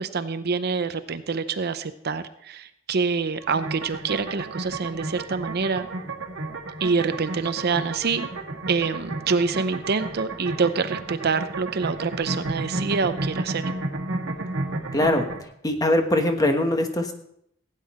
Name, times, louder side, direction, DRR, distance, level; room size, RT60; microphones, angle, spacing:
voice 1, 0.0-5.9 6.8-8.3 8.7-13.6, right 4 dB, 55° right, 11 dB, 0.6 m, -26 dB
sound 1, 3.4-15.4, right 2 dB, 85° right, 1.8 m, -32 dB
voice 2, 14.9-15.2 15.6-17.1, left 1 dB, 20° left, 6 dB, 1.2 m, -21 dB
16.0 x 9.1 x 4.3 m, 0.73 s
head